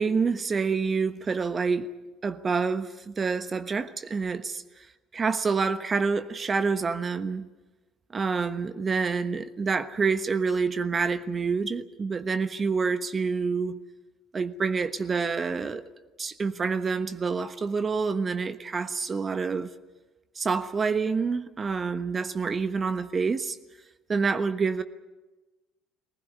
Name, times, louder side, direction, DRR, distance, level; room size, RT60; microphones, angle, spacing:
voice 1, 0.0-1.9 2.2-4.6 5.1-7.5 8.1-13.8 14.3-15.8 16.2-19.7 20.4-23.6 24.1-24.8, right 5 dB, 30° right, 1.2 m, -27 dB
20.5 x 19.5 x 9.5 m
hypercardioid pair, 60°, 0 cm